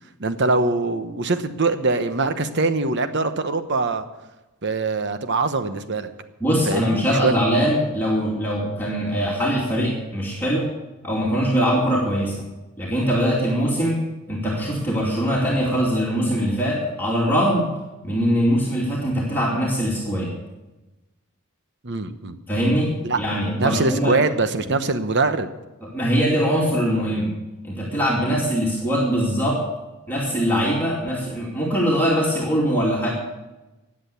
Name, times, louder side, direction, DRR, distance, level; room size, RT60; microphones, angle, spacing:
voice 1, 0.2-4.0 4.6-6.1 6.7-7.3 21.8-22.4 23.0-23.2 23.6-25.5, right 3 dB, 50° right, 10 dB, 1.0 m, -23 dB
voice 2, 6.4-10.7 11.0-12.4 12.8-14.0 14.3-17.7 18.0-20.3 22.5-24.2 25.8-27.3 27.6-29.6 30.1-33.1, equal, 10° left, -5 dB, 2.6 m, -22 dB
15.5 x 9.9 x 6.9 m, 1.1 s
head